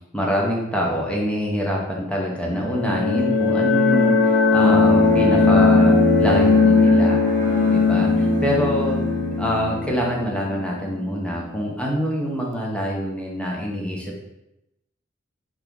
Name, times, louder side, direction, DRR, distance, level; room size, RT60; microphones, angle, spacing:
voice 1, 0.1-7.2 7.7-9.0 9.4-14.2, equal, 5° left, -2 dB, 0.5 m, -25 dB
sound 1, 2.5-11.1, left 4 dB, 60° left, 0.3 m, -18 dB
Bowed string instrument, 4.5-10.4, right 1 dB, 45° right, 0.7 m, -26 dB
2.9 x 2.4 x 3.4 m, 0.90 s
head